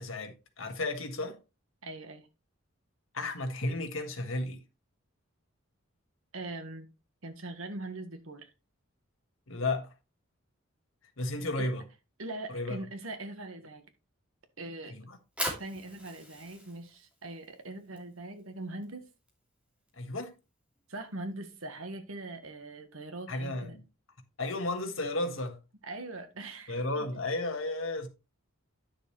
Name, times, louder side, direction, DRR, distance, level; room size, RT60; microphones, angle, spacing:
voice 1, 0.0-1.4 3.1-4.6 9.5-9.9 11.2-11.8 12.5-12.8 14.9-15.2 20.0-20.3 23.3-23.8 24.4-25.6 26.7-28.1, left 2 dB, 70° left, 1.6 m, -33 dB
voice 2, 1.8-2.3 6.3-6.9 7.2-8.5 11.5-11.7 12.2-13.8 14.6-15.0 15.6-19.0 20.9-23.8 25.8-27.2, right 2 dB, 80° right, 1.5 m, -41 dB
Fire, 15.1-21.3, equal, 5° right, 2.6 m, -42 dB
10.0 x 6.4 x 3.2 m
head